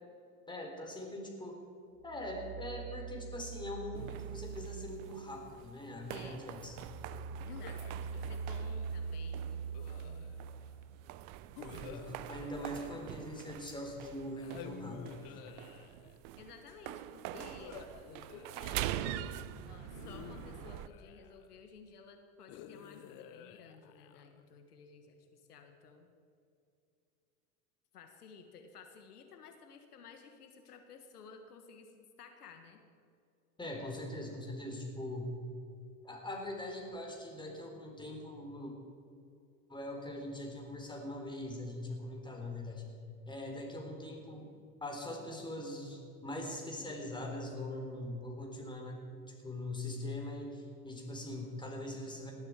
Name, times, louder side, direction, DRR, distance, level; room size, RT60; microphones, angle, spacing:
voice 1, 0.5-1.6 2.0-6.8 11.6-15.3 33.6-35.4 36.0-38.7 39.7-42.9 43.3-44.5 44.8-52.3, left 1 dB, 10° left, 1 dB, 3.9 m, -42 dB
sound 1, 2.1-5.9 6.3-10.9, right 5 dB, 35° right, 2.0 m, -43 dB
sound 2, 3.9-20.9, right 13 dB, 55° right, 0.8 m, -45 dB
voice 2, 6.1-6.5 7.4-10.3 16.4-17.8 18.3-26.1 27.9-32.8 51.8-52.3, left 5 dB, 85° left, 6 dB, 1.6 m, -55 dB
sound 3, 7.5-9.0 9.7-10.6 11.5-13.7 14.4-16.2 17.3-19.1 19.9-21.6 22.5-24.4, left 10 dB, 50° left, 1.1 m, -52 dB
18.5 x 12.5 x 4.8 m, 2.6 s
hypercardioid pair, 90°, 45 cm